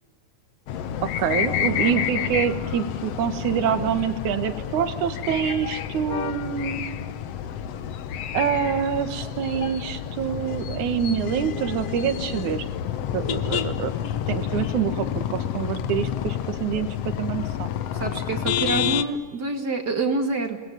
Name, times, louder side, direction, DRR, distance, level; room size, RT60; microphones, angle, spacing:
sound 1, 0.7-19.0, left 9 dB, 65° left, 1.9 m, -29 dB
voice 1, 1.0-6.8 8.3-12.7 13.1-13.9 14.3-17.7, right 8 dB, 80° right, 10 dB, 3.0 m, -26 dB
voice 2, 18.0-20.6, right 3 dB, 35° right, 5 dB, 2.7 m, -26 dB
29.5 x 20.5 x 9.3 m, 1.2 s
omnidirectional pair, 3.4 m